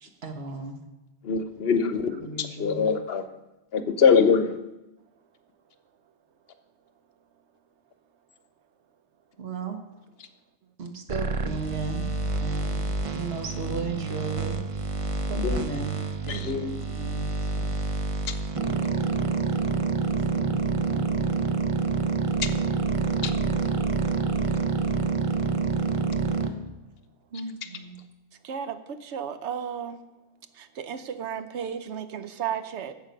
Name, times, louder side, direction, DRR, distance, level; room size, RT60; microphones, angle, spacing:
voice 1, 0.0-0.8 2.2-2.9 9.4-9.8 10.8-12.1 12.4-14.6 15.3-15.9 16.3-16.4 16.9-17.3 17.6-17.7 20.3-21.4 27.3-28.0, right 4 dB, 65° right, 1.4 m, -36 dB
voice 2, 1.2-2.1 2.4-3.2 3.7-4.6 15.3-15.7 16.3-16.8 23.2-23.3, left 6 dB, 65° left, 0.9 m, -23 dB
sound 1, 11.1-26.5, right 4 dB, 35° right, 0.6 m, -27 dB
voice 3, 28.4-30.0 30.5-33.1, right 8 dB, 90° right, 1.0 m, -34 dB
11.0 x 7.4 x 5.2 m
omnidirectional pair, 1.1 m